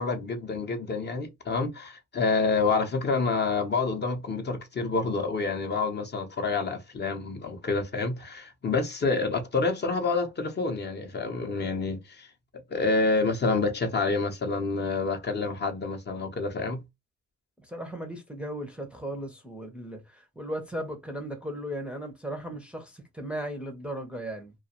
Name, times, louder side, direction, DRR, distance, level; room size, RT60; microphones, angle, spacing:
voice 1, 0.0-12.3 12.7-16.8, left 3 dB, 35° left, 0.6 m, -28 dB
voice 2, 17.7-24.5, right 1 dB, 5° right, 0.6 m, -36 dB
2.3 x 2.2 x 2.8 m
cardioid pair, 90°, 30 cm